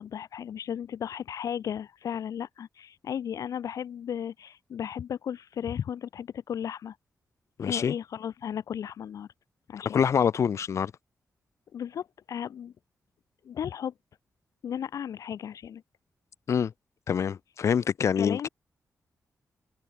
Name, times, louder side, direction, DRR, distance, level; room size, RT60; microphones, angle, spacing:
voice 1, 0.0-7.0 7.6-9.3 9.7-10.0 11.7-12.7 13.4-13.9 14.6-15.8 18.2-18.5, left 9 dB, 80° left, 5.1 m, -35 dB
voice 2, 7.6-7.9 9.9-10.9 16.5-16.7 17.1-18.5, left 7 dB, 55° left, 4.1 m, -25 dB
wide cardioid pair, 175°, 6 cm